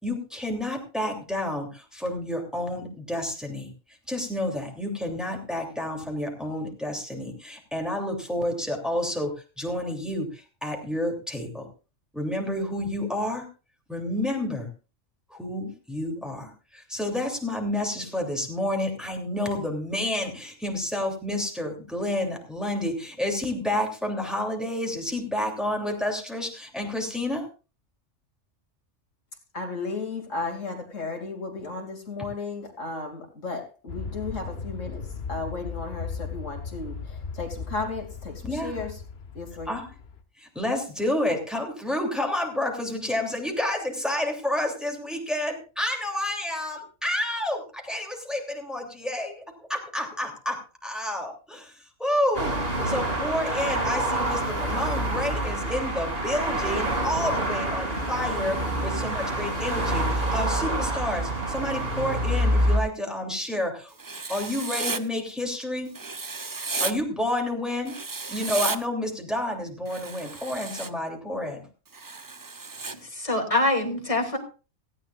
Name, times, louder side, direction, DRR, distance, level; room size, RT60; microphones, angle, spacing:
voice 1, 0.0-3.7 4.1-9.3 9.6-11.7 12.1-13.5 13.9-14.7 15.3-27.4 38.4-38.8 39.7-39.9 40.4-49.4 49.7-52.6 52.8-63.9 64.3-65.9 66.8-68.0 68.3-71.6, left 1 dB, ahead, 1 dB, 3.0 m, -30 dB
voice 2, 29.5-39.0 39.3-39.7, left 3 dB, 85° left, 3 dB, 3.0 m, -34 dB
Aircraft, 33.9-40.2, left 5 dB, 55° left, 1.4 m, -37 dB
sound 1, 52.3-62.8, right 1 dB, 50° right, 3.2 m, -27 dB
Writing, 64.0-65.0 65.9-66.9 67.9-68.8 69.9-70.9 71.9-72.9, right 4 dB, 30° right, 0.4 m, -33 dB
voice 3, 73.1-74.4, left 2 dB, 25° left, 3 dB, 2.6 m, -24 dB
17.5 x 15.0 x 2.5 m, 0.33 s
omnidirectional pair, 1.3 m